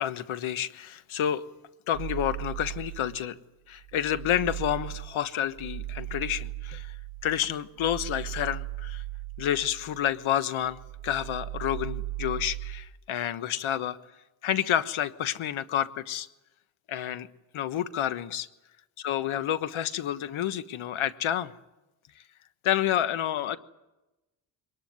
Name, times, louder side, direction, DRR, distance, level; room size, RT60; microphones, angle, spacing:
voice 1, 0.0-1.5 1.9-3.4 3.7-7.0 7.2-9.0 9.4-14.0 14.4-16.3 16.9-17.3 17.5-18.5 19.0-21.5 22.6-23.6, left 11 dB, 85° left, 13 dB, 1.3 m, -29 dB
sound 1, 1.9-3.4 3.8-10.3 10.6-12.9, right 16 dB, 90° right, 1.1 m, -38 dB
22.5 x 19.5 x 9.5 m, 1.0 s
cardioid pair, 105°, 47 cm